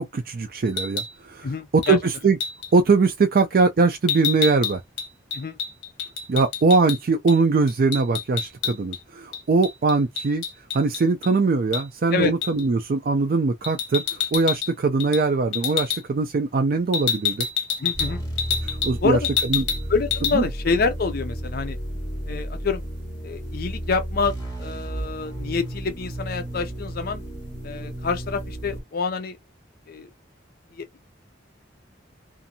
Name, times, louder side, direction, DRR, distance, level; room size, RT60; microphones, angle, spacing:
voice 1, 0.0-2.4 2.7-4.8 6.3-10.4 10.7-17.5 18.6-19.2 19.5-19.6 20.3-20.4, right 4 dB, 50° right, 0.4 m, -21 dB
sound 1, 0.7-1.1 1.8-2.0 2.4-2.7 4.1-7.0 7.3-7.4 7.7-9.0 9.3-11.3 11.7-11.9 12.4-12.6 13.6-14.7 15.0-15.2 15.5-16.0 16.9-19.0 19.2-19.8 20.1-20.3, left 7 dB, 80° left, 0.8 m, -28 dB
voice 2, 1.4-2.0 5.3-5.6 12.1-12.3 17.8-18.2 19.0-19.3 19.9-21.8 22.3-22.8 23.2-27.2 27.6-29.4 29.9-30.1 30.7-30.9, left 4 dB, 55° left, 0.5 m, -27 dB
sound 2, 17.9-28.8, right 1 dB, 15° left, 1.5 m, -33 dB
2.6 x 2.5 x 2.7 m
head